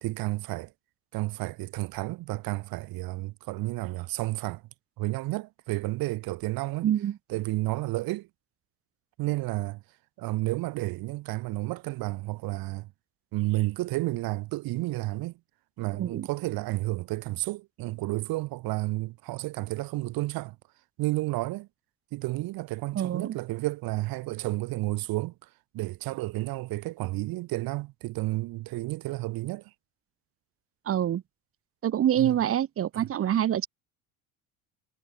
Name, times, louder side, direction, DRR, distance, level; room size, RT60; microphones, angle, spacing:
voice 1, 0.0-0.7 1.1-4.6 5.0-6.9 7.3-8.3 9.2-9.8 10.2-12.9 13.3-15.3 15.8-20.6 21.0-21.7 22.1-25.3 25.7-29.6 32.2-32.4 32.9-33.1, right 19 dB, 60° right, 1.2 m, -31 dB
voice 2, 6.8-7.2 15.9-16.3 22.9-23.4 30.9-31.2 31.8-33.7, right 10 dB, 35° right, 0.9 m, -26 dB
supercardioid pair, 100°, 40 cm